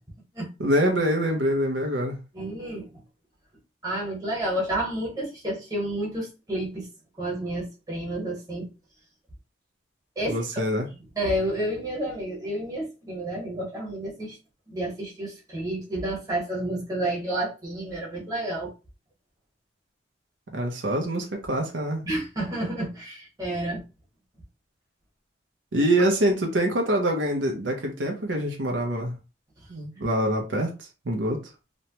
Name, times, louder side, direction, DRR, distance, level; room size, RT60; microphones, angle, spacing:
voice 1, 0.6-2.2 10.3-10.9 20.5-22.1 25.7-29.1 29.7-30.7 31.1-31.4, right 1 dB, 80° right, 0.7 m, -25 dB
voice 2, 2.3-2.9 3.8-6.9 7.2-8.7 10.2-10.4 11.1-14.4 14.7-18.7 22.0-23.8, right 1 dB, 20° right, 1.2 m, -30 dB
3.0 x 2.1 x 2.9 m
head